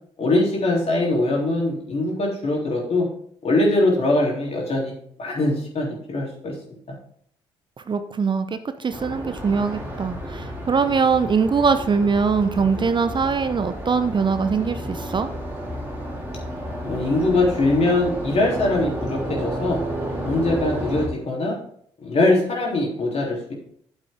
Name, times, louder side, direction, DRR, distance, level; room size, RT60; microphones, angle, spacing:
voice 1, 0.2-3.1 3.4-6.6 16.8-19.8 20.2-21.6 22.0-23.5, left 2 dB, 45° left, -1 dB, 3.4 m, -22 dB
voice 2, 7.9-8.5 8.8-15.3, right 5 dB, 35° right, 10 dB, 0.7 m, -22 dB
sound 1, 8.9-21.1, equal, 15° right, 3.0 m, -31 dB
9.1 x 7.7 x 3.6 m, 0.64 s
hypercardioid pair, 45°, 14 cm